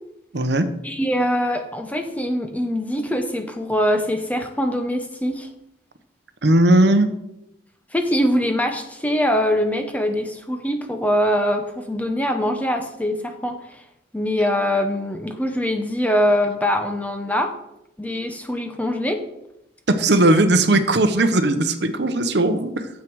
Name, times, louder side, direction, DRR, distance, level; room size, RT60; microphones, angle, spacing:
voice 1, 0.3-0.7 6.4-7.1 19.9-22.9, right 1 dB, 65° right, 9 dB, 0.8 m, -17 dB
voice 2, 0.8-5.5 7.9-13.8 14.1-17.5 18.0-19.3, equal, 10° left, 5 dB, 0.8 m, -23 dB
9.4 x 7.4 x 4.7 m, 0.85 s
head